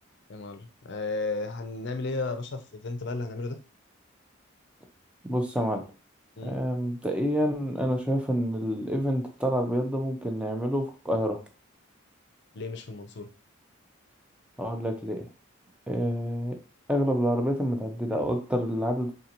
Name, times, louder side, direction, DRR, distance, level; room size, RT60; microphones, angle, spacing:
voice 1, 0.3-3.6 6.4-6.6 12.5-13.3, left 3 dB, 55° left, 8 dB, 0.5 m, -34 dB
voice 2, 5.2-5.8 6.4-11.4 14.6-15.3 15.9-16.5 16.9-19.1, equal, 5° right, 4 dB, 0.6 m, -28 dB
3.9 x 3.9 x 2.9 m, 0.34 s
head